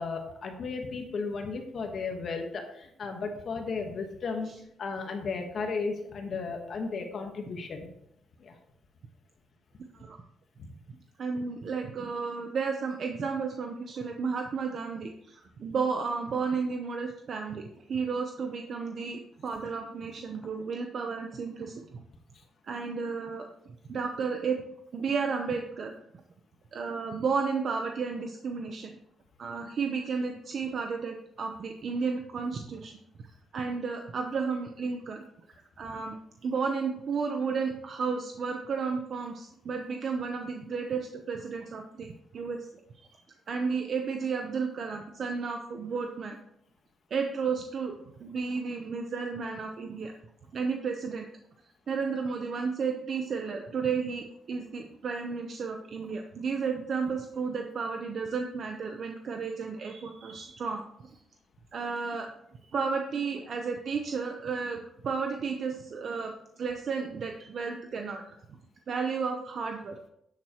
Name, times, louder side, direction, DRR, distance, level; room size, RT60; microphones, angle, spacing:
voice 1, 0.0-4.5 4.8-7.9 8.4-8.5 10.6-10.7, left 4 dB, 55° left, 4 dB, 1.3 m, -34 dB
voice 2, 11.2-22.0 22.6-23.4 23.9-24.6 24.9-25.9 26.7-28.9 29.4-32.9 33.5-35.2 35.5-36.2 36.4-42.1 42.3-42.6 43.1-43.2 43.5-46.4 47.1-47.9 48.2-50.1 50.5-51.3 51.9-61.1 61.7-62.3 62.7-68.2 68.9-70.0, right 5 dB, 55° right, 4 dB, 0.8 m, -32 dB
11.0 x 7.5 x 3.0 m, 0.75 s
cardioid pair, 115°, 0 cm